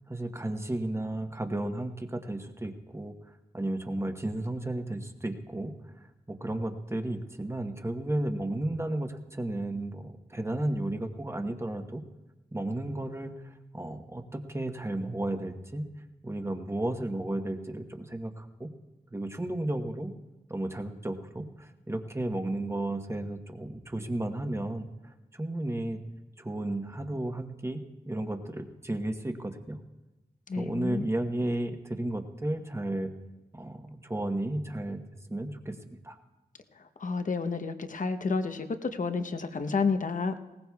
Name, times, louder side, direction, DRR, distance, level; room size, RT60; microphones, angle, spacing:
voice 1, 0.1-3.1 3.5-12.0 12.5-15.9 16.2-18.7 19.1-20.1 20.5-24.9 25.3-26.0 26.4-29.8 30.6-33.1 33.5-35.0 35.3-36.2, right 1 dB, 15° right, 6 dB, 1.0 m, -33 dB
voice 2, 30.5-31.0 37.0-40.3, left 4 dB, 55° left, 8 dB, 0.9 m, -30 dB
20.0 x 18.5 x 2.3 m, 1.0 s
wide cardioid pair, 90°, 16 cm